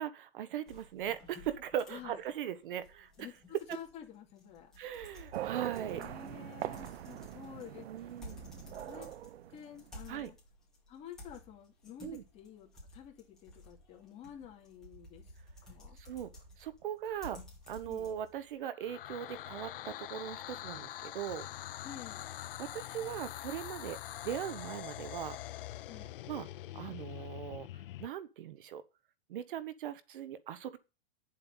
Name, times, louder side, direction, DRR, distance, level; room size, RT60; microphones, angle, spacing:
voice 1, 0.0-3.3 3.7-3.8 4.8-6.2 7.9-8.4 10.1-10.3 12.0-12.2 16.0-16.3 16.6-17.4 17.7-21.5 22.6-24.0 24.2-25.4 26.3-26.5 26.7-27.7 28.0-28.8 29.3-30.8, right 10 dB, 55° right, 1.1 m, -39 dB
sound 1, 0.7-18.6, left 1 dB, ahead, 4.6 m, -54 dB
voice 2, 3.7-4.7 5.8-8.1 8.8-9.1 9.5-10.4 10.9-15.2 15.6-16.0 17.9-18.1 21.8-22.4 25.9-26.1, left 9 dB, 20° left, 2.7 m, -50 dB
sound 2, 5.3-10.1, right 13 dB, 85° right, 0.7 m, -42 dB
sound 3, 18.8-28.1, left 14 dB, 60° left, 0.6 m, -44 dB
9.9 x 7.7 x 5.5 m
supercardioid pair, 170°, 30 cm